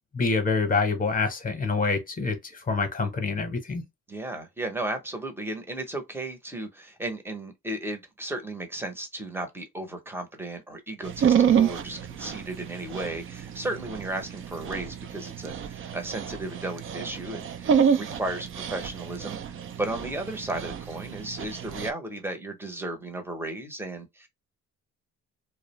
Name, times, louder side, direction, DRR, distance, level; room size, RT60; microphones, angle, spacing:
voice 1, 0.1-3.8, left 4 dB, 30° left, 0.8 m, -26 dB
voice 2, 4.1-24.3, right 2 dB, 10° right, 0.7 m, -35 dB
Dog, 11.1-21.9, right 8 dB, 45° right, 0.4 m, -28 dB
2.4 x 2.1 x 2.9 m
cardioid pair, 90°, 30 cm